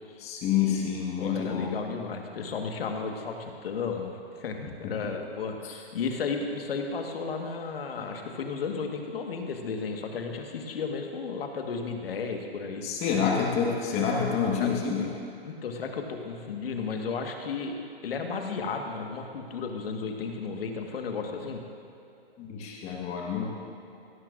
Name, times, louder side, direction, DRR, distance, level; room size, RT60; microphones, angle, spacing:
voice 1, 0.2-1.7 4.8-4.9 12.8-15.1 22.4-23.4, left 7 dB, 20° left, -1 dB, 1.4 m, -28 dB
voice 2, 1.2-12.8 14.6-14.7 15.4-17.8 18.0-21.6, left 5 dB, 65° left, 3 dB, 1.5 m, -34 dB
16.5 x 12.0 x 2.5 m, 2.8 s
hypercardioid pair, 150°, 31 cm